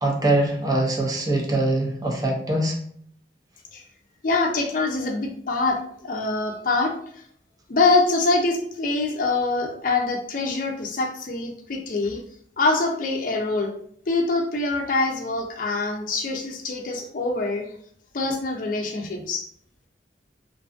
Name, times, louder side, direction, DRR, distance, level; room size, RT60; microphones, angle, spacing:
voice 1, 0.0-2.8, right 1 dB, 20° right, 0 dB, 0.5 m, -23 dB
voice 2, 4.2-6.9 7.7-12.2 12.6-13.7 14.1-17.7 18.1-19.4, left 3 dB, 50° left, 3 dB, 0.5 m, -24 dB
2.5 x 2.5 x 2.4 m, 0.63 s
head